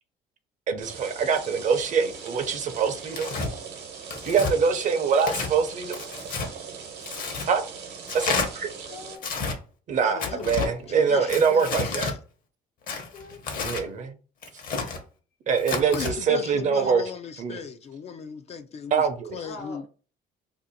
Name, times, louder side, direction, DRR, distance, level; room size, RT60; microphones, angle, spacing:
voice 1, 0.7-3.3 4.2-6.0 7.5-7.6 8.1-8.7 9.9-12.1 13.6-14.1 15.5-17.0 17.4-17.6 18.9-19.4, right 6 dB, 45° right, 0.6 m, -24 dB
sound 1, 0.8-9.2, right 6 dB, 75° right, 0.9 m, -40 dB
Tearing, 3.1-3.5 4.1-4.5 5.2-5.5 5.9-6.5 7.0-7.5 8.1-8.5 9.2-9.6 10.2-10.7 11.3-12.1 12.9-13.8 14.4-15.0 15.6-16.1, left 4 dB, 55° left, 0.9 m, -30 dB
voice 2, 8.9-9.3 10.1-11.4 13.1-14.1 19.4-19.9, left 4 dB, 85° left, 0.9 m, -45 dB
voice 3, 10.0-12.2 15.9-19.0 19.3-19.9, left 6 dB, 40° left, 0.3 m, -37 dB
2.6 x 2.4 x 3.9 m
cardioid pair, 110°, 17 cm